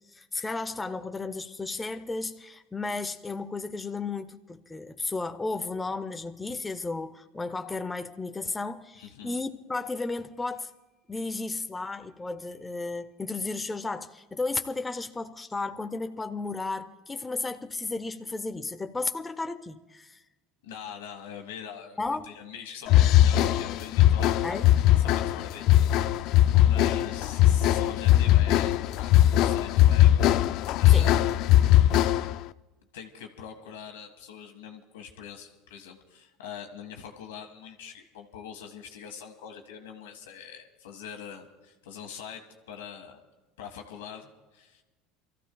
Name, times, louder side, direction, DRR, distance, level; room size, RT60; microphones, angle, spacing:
voice 1, 0.1-10.7 11.1-20.2 22.0-22.3 24.4-24.7 30.9-31.1, left 3 dB, 15° left, 0.7 m, -34 dB
voice 2, 9.0-9.4 20.6-22.0 22.2-24.6 25.0-25.7 26.0-30.2 30.8-31.4 32.9-43.2 43.6-44.8, left 7 dB, 90° left, 1.7 m, -43 dB
sound 1, 22.9-32.4, left 13 dB, 60° left, 0.3 m, -20 dB
28.0 x 14.5 x 2.3 m
supercardioid pair, 100°, 0 cm